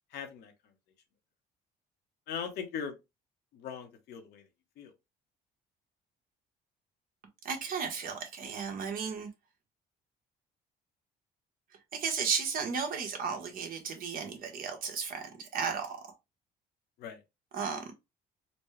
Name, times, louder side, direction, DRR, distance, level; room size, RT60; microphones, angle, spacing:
voice 1, 0.1-0.5 2.3-3.0 3.5-4.5 4.8-4.9 17.0-17.2, left 7 dB, 75° left, 1.1 m, -39 dB
voice 2, 7.4-9.3 11.9-16.1 17.5-17.9, right 6 dB, 55° right, 1.3 m, -34 dB
4.2 x 2.2 x 3.2 m
cardioid pair, 110°, 17 cm